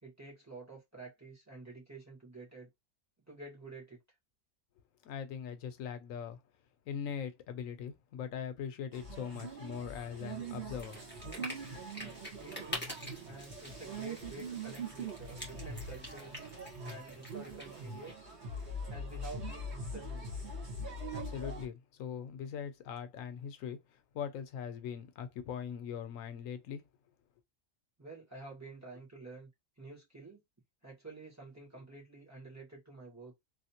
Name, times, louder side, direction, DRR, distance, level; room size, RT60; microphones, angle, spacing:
voice 1, 0.0-2.7 3.3-4.0 12.4-12.9 13.2-16.4 16.8-18.4 18.9-20.3 28.0-29.5 29.8-30.4 30.8-33.4, right 3 dB, 10° right, 1.5 m, -49 dB
voice 2, 5.0-6.4 6.9-11.0 21.1-26.8, left 7 dB, 85° left, 1.0 m, -41 dB
sound 1, 8.9-21.7, right 1 dB, 55° right, 1.6 m, -43 dB
sound 2, 10.8-18.1, left 1 dB, 10° left, 1.2 m, -47 dB
3.1 x 2.6 x 2.8 m
omnidirectional pair, 1.4 m